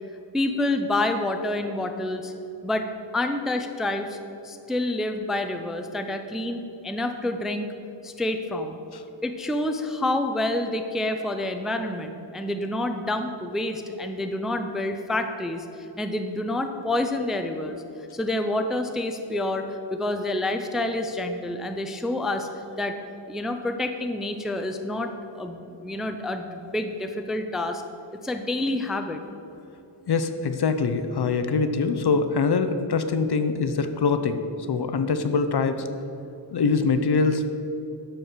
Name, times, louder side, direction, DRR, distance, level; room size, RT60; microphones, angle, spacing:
voice 1, 0.3-2.3 2.6-2.9 3.1-4.2 4.4-7.7 8.0-8.8 9.2-15.7 16.0-17.8 18.1-22.5 22.8-23.0 23.3-27.8 28.1-29.2, left 1 dB, ahead, 6 dB, 0.4 m, -28 dB
voice 2, 30.1-34.4 34.7-35.9 36.5-37.5, left 4 dB, 55° left, 9 dB, 0.7 m, -23 dB
12.0 x 4.5 x 6.6 m, 2.9 s
wide cardioid pair, 115°, 48 cm